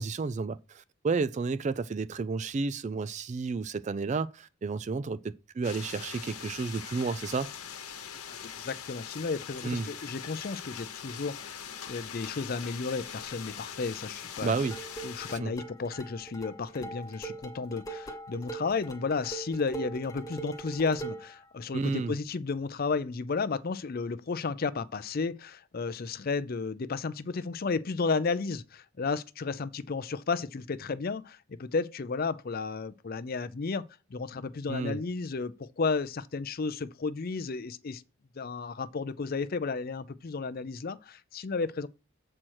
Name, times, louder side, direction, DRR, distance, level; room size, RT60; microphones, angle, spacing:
voice 1, 0.0-7.5 9.6-9.9 14.4-14.8 15.3-15.5 21.7-22.1 34.7-35.0, right 4 dB, 30° right, 0.3 m, -31 dB
sound 1, 5.6-15.4, left 8 dB, 80° left, 1.1 m, -42 dB
voice 2, 8.1-14.6 15.0-38.0 38.4-41.9, left 4 dB, 40° left, 0.4 m, -33 dB
sound 2, 14.4-21.4, right 3 dB, 15° left, 0.8 m, -42 dB
7.6 x 4.4 x 6.3 m
head